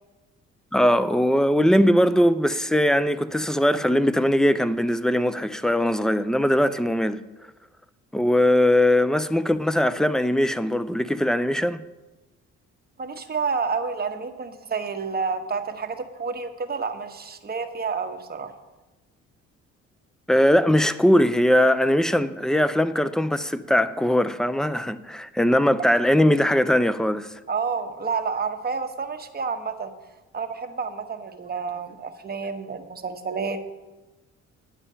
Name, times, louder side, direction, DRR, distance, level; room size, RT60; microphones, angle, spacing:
voice 1, 0.7-7.2 8.1-11.8 20.3-27.3, left 1 dB, ahead, 0.4 m, -20 dB
voice 2, 13.0-18.5 27.5-29.9 30.3-33.6, right 5 dB, 30° right, 1.0 m, -29 dB
10.0 x 7.1 x 5.6 m
cardioid pair, 90°, 30 cm